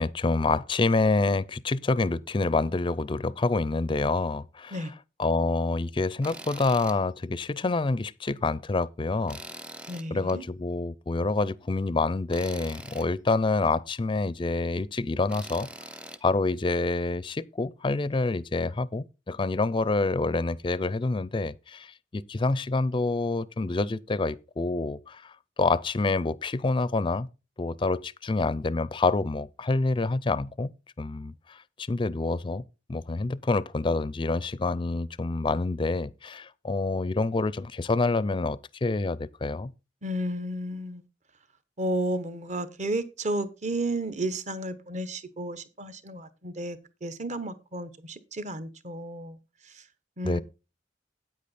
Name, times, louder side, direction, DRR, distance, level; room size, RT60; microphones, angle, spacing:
voice 1, 0.0-4.8 5.2-9.4 10.1-15.7 16.2-25.3 25.6-27.3 27.6-30.7 31.0-32.6 32.9-39.7 50.2-50.4, left 3 dB, 30° left, 0.4 m, -27 dB
Tools, 6.2-7.0 7.4-7.5 9.3-10.3 12.3-13.1 15.3-16.2, right 1 dB, 5° right, 0.7 m, -43 dB
voice 2, 9.9-10.4 40.0-41.0 41.8-49.4 49.6-49.8 50.2-50.4, right 1 dB, 40° right, 1.1 m, -32 dB
9.0 x 8.5 x 4.1 m
head